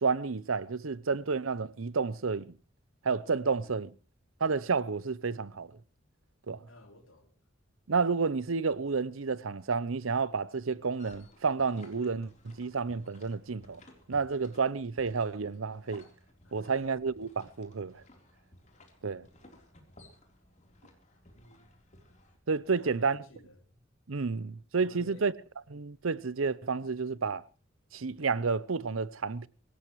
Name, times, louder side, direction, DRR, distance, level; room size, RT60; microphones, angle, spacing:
voice 1, 0.0-2.5 3.0-3.9 4.4-5.7 6.5-6.6 7.9-13.8 14.1-16.0 16.5-18.0 19.0-19.2 22.5-23.2 24.1-25.3 25.7-27.4 27.9-29.5, right 4 dB, 90° right, 0.8 m, -30 dB
voice 2, 3.4-3.8 6.7-7.3 16.4-16.9 21.3-21.7 22.7-23.8 24.8-25.3, left 1 dB, 80° left, 3.5 m, -55 dB
sound 1, 10.7-22.4, left 1 dB, 35° left, 3.8 m, -58 dB
24.5 x 16.5 x 3.2 m
head